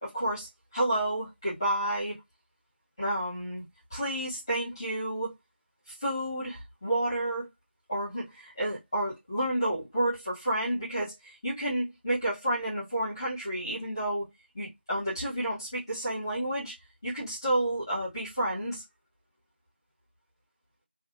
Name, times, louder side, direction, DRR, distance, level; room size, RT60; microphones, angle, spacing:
voice 1, 0.0-2.2 3.0-3.6 3.9-5.3 5.9-7.5 7.9-14.2 14.5-16.7 17.0-18.8, right 1 dB, 20° left, 2.0 m, -30 dB
3.4 x 3.2 x 2.6 m
figure-of-eight pair, 175°, 6 cm